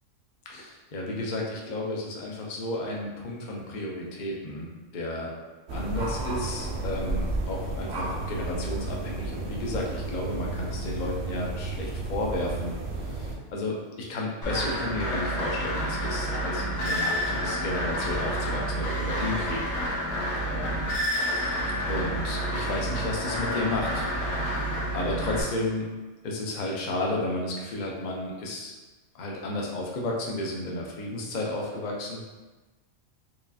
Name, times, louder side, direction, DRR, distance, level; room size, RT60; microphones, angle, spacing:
voice 1, 0.5-5.3 5.7-19.6 20.5-20.9 21.9-24.6 24.9-25.9 26.2-28.7 29.1-32.3, left 1 dB, 50° left, -2 dB, 0.6 m, -32 dB
sound 1, 5.7-13.4, right 2 dB, 60° right, 0.8 m, -32 dB
sound 2, 14.4-25.4, equal, 85° left, 1.2 m, -29 dB
4.7 x 2.3 x 2.6 m, 1.2 s
omnidirectional pair, 1.4 m